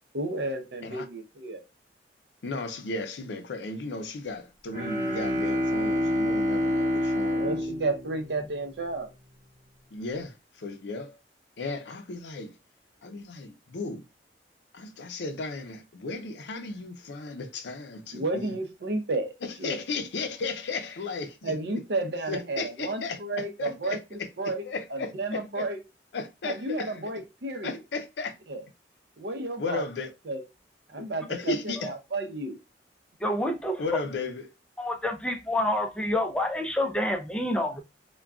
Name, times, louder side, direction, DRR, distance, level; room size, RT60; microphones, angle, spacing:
voice 1, 0.1-1.6 7.3-9.1 18.1-19.3 19.6-19.8 21.4-24.6 24.9-25.8 26.4-27.8 28.5-28.6 29.2-29.8 30.3-30.4 30.9-32.6, right 2 dB, 65° right, 0.6 m, -32 dB
voice 2, 2.4-7.6 9.9-11.2 11.6-12.5 13.0-14.0 14.7-18.5 19.4-21.7 22.3-25.7 26.1-27.0 27.6-28.3 29.6-30.1 31.3-31.9 33.8-34.5, left 3 dB, 75° left, 0.5 m, -35 dB
Bowed string instrument, 4.7-9.0, left 1 dB, 45° right, 0.9 m, -28 dB
voice 3, 33.2-33.8 34.8-37.8, left 1 dB, 5° left, 0.4 m, -28 dB
3.5 x 2.2 x 2.2 m
head